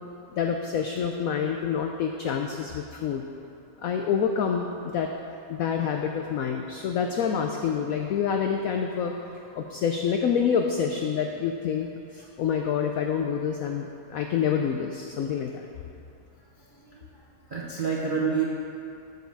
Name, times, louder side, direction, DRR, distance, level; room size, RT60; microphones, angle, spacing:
voice 1, 0.3-3.2 3.8-4.7 4.9-5.1 5.5-9.1 9.5-15.6, left 7 dB, 80° left, 3 dB, 0.7 m, -27 dB
voice 2, 16.7-17.0 17.5-18.4, right 6 dB, 50° right, -5 dB, 0.6 m, -28 dB
8.1 x 5.3 x 6.5 m, 2.6 s
omnidirectional pair, 2.0 m